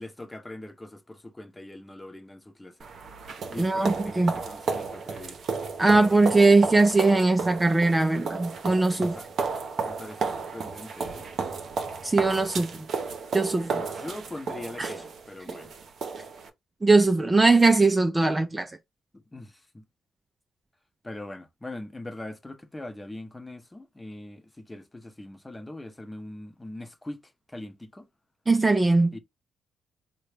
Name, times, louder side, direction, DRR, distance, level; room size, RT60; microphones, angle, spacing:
voice 1, 0.0-2.8 3.5-5.4 9.0-9.3 9.8-11.3 13.7-15.7 19.1-19.8 21.0-28.1 29.1-29.2, left 1 dB, 15° left, 0.8 m, -42 dB
sound 1, 2.8-16.5, right 5 dB, 55° right, 0.7 m, -33 dB
voice 2, 3.6-4.4 5.8-9.2 12.0-12.8 13.3-13.8 14.8-14.9 16.8-18.7 28.5-29.2, right 3 dB, 20° right, 0.4 m, -21 dB
4.0 x 2.2 x 3.3 m
cardioid pair, 90°, 0 cm